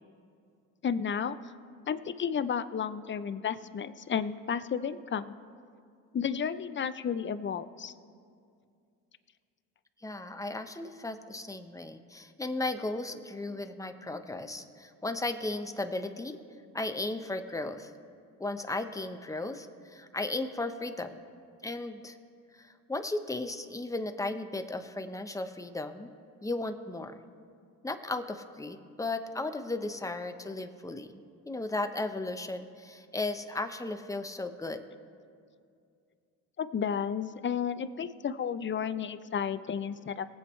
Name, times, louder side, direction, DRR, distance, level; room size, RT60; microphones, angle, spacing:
voice 1, 0.8-1.4 1.9-5.3 6.1-7.9 36.6-40.3, left 7 dB, 25° left, 12 dB, 0.6 m, -32 dB
voice 2, 10.0-16.4 16.7-17.9 18.4-21.2 21.6-22.2 22.5-26.1 26.4-27.2 27.8-34.8, left 2 dB, 5° left, 7 dB, 0.9 m, -35 dB
21.5 x 8.1 x 3.3 m, 2.3 s
hypercardioid pair, 60°, 44 cm